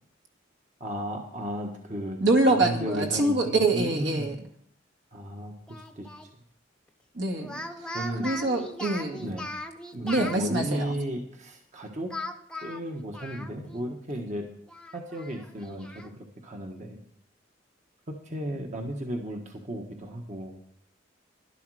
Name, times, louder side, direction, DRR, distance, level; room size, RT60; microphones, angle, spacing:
voice 1, 0.8-2.2 2.5-4.3 5.1-6.3 7.9-8.3 9.2-9.5 9.9-12.1 12.6-14.4 14.9-17.0 18.1-20.6, right 1 dB, 40° right, 2 dB, 1.4 m, -34 dB
voice 2, 2.2-4.4 7.2-7.6 8.2-9.3 10.0-11.0, right 2 dB, 70° right, 3 dB, 2.2 m, -25 dB
Speech, 5.7-6.3 7.4-10.4 12.1-13.8 14.2-14.3 14.7-16.1, left 1 dB, 5° left, 0.8 m, -39 dB
12.0 x 11.5 x 4.8 m, 0.65 s
head